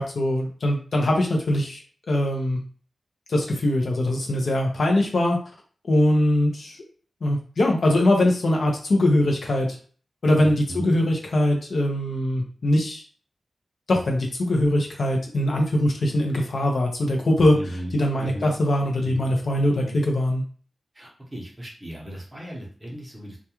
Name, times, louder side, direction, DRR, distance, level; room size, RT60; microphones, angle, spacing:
voice 1, 0.0-1.8 2.1-2.6 3.3-5.4 5.8-6.8 7.2-9.8 10.2-13.0 13.9-17.6 17.9-20.4, left 1 dB, 60° left, 1 dB, 0.6 m, -22 dB
voice 2, 10.4-10.9 17.5-18.5 18.9-19.3 19.7-20.0 20.9-23.4, equal, 15° right, -2 dB, 0.8 m, -37 dB
2.3 x 2.2 x 2.9 m, 0.43 s
wide cardioid pair, 140°, 0 cm